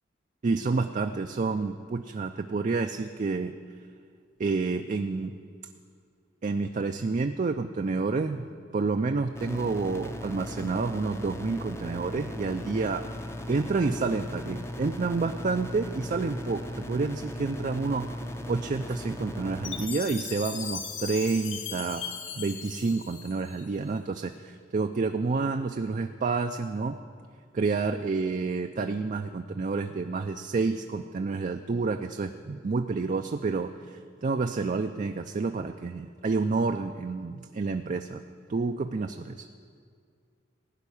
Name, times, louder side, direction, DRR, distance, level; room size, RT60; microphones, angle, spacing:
voice 1, 0.4-3.5 4.4-5.3 6.4-8.5 8.7-13.1 13.5-18.1 18.5-22.0 22.4-27.0 27.5-38.2 38.5-39.5, right 4 dB, 40° right, 6 dB, 0.4 m, -29 dB
sound 1, 9.3-19.9, left 1 dB, 15° left, 0.6 m, -38 dB
Chime, 19.6-23.9, left 7 dB, 80° left, 1.1 m, -38 dB
16.5 x 5.7 x 9.9 m, 2.1 s
head